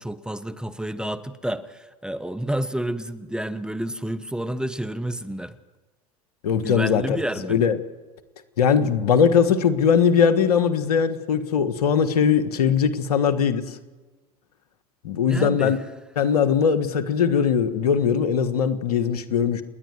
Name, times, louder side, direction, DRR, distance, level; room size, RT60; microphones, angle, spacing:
voice 1, 0.0-5.6 6.6-7.6 15.3-15.7, right 1 dB, 5° right, 1.0 m, -30 dB
voice 2, 6.4-7.2 7.5-7.8 8.6-13.8 15.0-15.8 16.2-19.6, left 7 dB, 85° left, 1.4 m, -20 dB
28.5 x 10.5 x 9.4 m
hypercardioid pair, 90°, 19 cm